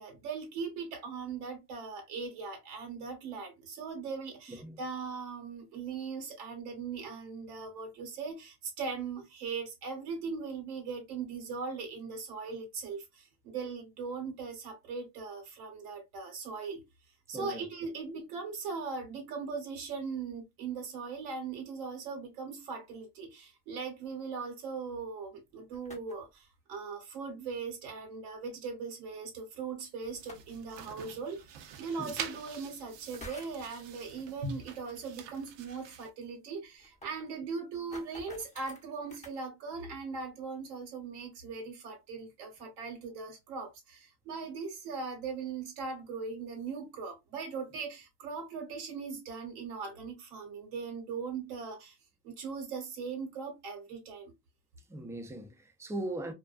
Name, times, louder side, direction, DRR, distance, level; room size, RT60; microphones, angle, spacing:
voice 1, 0.0-16.9 17.3-52.0 52.2-54.3, right 5 dB, 85° right, 1.2 m, -39 dB
voice 2, 4.5-4.8 17.3-17.6 32.0-32.1 54.9-56.3, right 1 dB, 5° right, 0.4 m, -39 dB
sound 1, 25.5-26.3 28.0-28.1 30.1-30.7 31.8-31.9 33.0-33.7 34.7-34.9 35.2-35.3 35.6-35.7 35.9-36.0 36.6-39.4, left 1 dB, 15° left, 0.8 m, -50 dB
sound 2, 30.0-36.1, right 8 dB, 65° right, 0.7 m, -46 dB
2.4 x 2.2 x 2.3 m
supercardioid pair, 90°, 46 cm